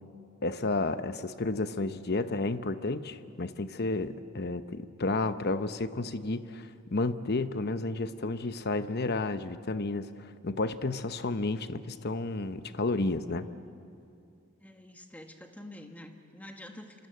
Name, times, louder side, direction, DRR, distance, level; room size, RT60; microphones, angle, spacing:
voice 1, 0.4-13.5, left 2 dB, 50° left, 11 dB, 0.9 m, -31 dB
voice 2, 14.6-17.1, left 1 dB, 5° left, 4 dB, 1.6 m, -47 dB
27.5 x 25.5 x 7.8 m, 2.5 s
head